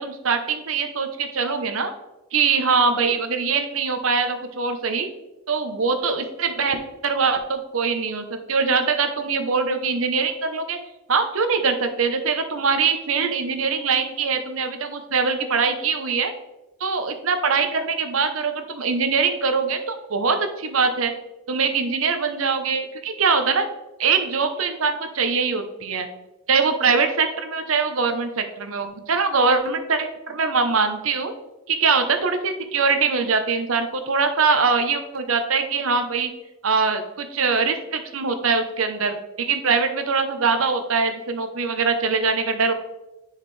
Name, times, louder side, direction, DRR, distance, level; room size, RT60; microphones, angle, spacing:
voice 1, 0.0-1.9 2.3-5.1 5.5-10.8 11.1-16.3 16.8-21.1 21.5-23.7 24.0-26.1 26.5-31.3 31.7-36.3 36.6-42.7, right 5 dB, 80° right, 8 dB, 0.8 m, -22 dB
10.0 x 4.8 x 3.3 m, 1.0 s
head